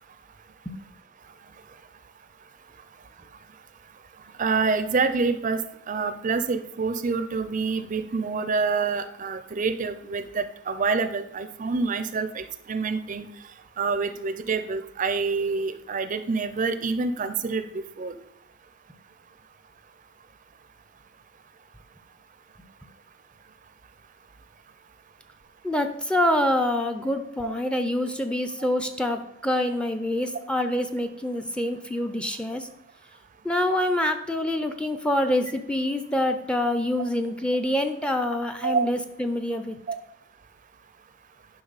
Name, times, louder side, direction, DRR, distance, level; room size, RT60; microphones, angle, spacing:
voice 1, 4.4-5.6 5.9-13.3 13.8-17.6 18.0-18.1 27.4-27.5 28.6-28.7 38.6-38.9 39.9-40.0, right 4 dB, 40° right, 11 dB, 0.5 m, -27 dB
voice 2, 25.6-32.7 33.4-39.8, left 1 dB, 5° left, 8 dB, 0.5 m, -26 dB
10.0 x 5.8 x 4.0 m, 0.78 s
head